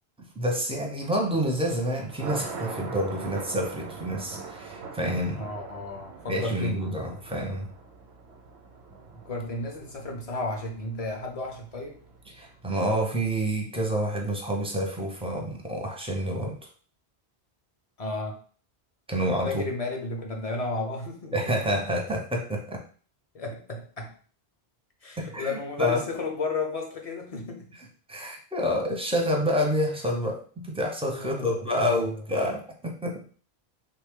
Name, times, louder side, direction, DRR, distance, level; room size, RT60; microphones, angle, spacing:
voice 1, 0.2-5.5 6.3-7.7 12.4-16.6 19.1-19.6 21.3-22.8 25.2-26.0 28.1-33.3, equal, 10° right, 0 dB, 0.4 m, -28 dB
Thunder, 1.4-12.7, right 4 dB, 85° right, 0.9 m, -42 dB
voice 2, 5.4-6.8 9.2-12.0 18.0-18.4 19.4-21.5 23.3-24.1 25.0-27.8 31.1-32.2, left 2 dB, 45° left, 2 dB, 0.5 m, -33 dB
3.2 x 2.3 x 3.5 m, 0.42 s
omnidirectional pair, 1.1 m